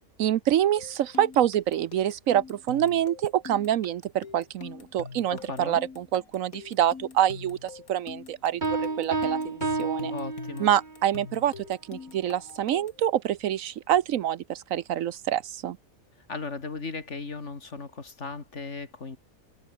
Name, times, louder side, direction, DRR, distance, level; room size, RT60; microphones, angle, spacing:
voice 1, 0.2-10.1 10.6-15.8, right 11 dB, 70° right, 1.1 m, -26 dB
sound 1, 0.8-13.1, left 5 dB, 80° left, 2.5 m, -44 dB
voice 2, 5.3-5.8 10.1-10.7 16.3-19.2, left 4 dB, 55° left, 2.7 m, -37 dB
sound 2, 8.6-11.0, right 3 dB, 35° right, 2.0 m, -30 dB
omnidirectional pair, 1.5 m